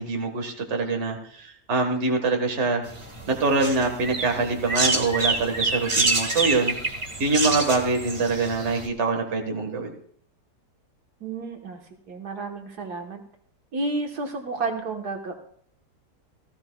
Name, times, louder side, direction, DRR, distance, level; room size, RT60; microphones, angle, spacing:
voice 1, 0.0-2.8 3.3-6.7 7.2-9.9, right 3 dB, 45° right, 4 dB, 1.7 m, -24 dB
sound 1, 2.9-8.9, right 2 dB, 20° right, 1.2 m, -27 dB
voice 2, 11.2-11.8 12.1-13.2 13.7-15.3, right 3 dB, 70° right, 2 dB, 1.8 m, -31 dB
17.5 x 15.0 x 2.3 m, 0.63 s
omnidirectional pair, 1.8 m